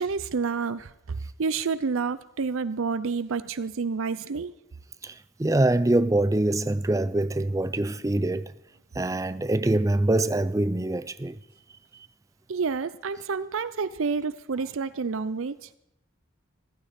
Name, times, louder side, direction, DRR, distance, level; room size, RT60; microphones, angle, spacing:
voice 1, 0.0-4.5 12.5-15.7, right 5 dB, 70° right, 0.5 m, -29 dB
voice 2, 5.0-8.5 9.0-11.4, right 1 dB, 15° right, 0.4 m, -24 dB
15.0 x 14.5 x 4.2 m
head